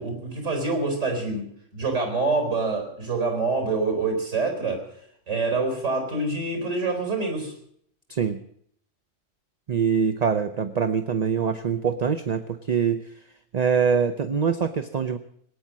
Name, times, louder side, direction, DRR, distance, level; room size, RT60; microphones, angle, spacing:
voice 1, 0.0-1.4 1.7-4.8 5.3-7.5, right 3 dB, 90° right, 4 dB, 4.5 m, -26 dB
voice 2, 9.7-13.1 13.5-15.2, right 6 dB, 40° right, 9 dB, 0.7 m, -24 dB
19.0 x 9.3 x 7.4 m, 0.67 s
omnidirectional pair, 1.3 m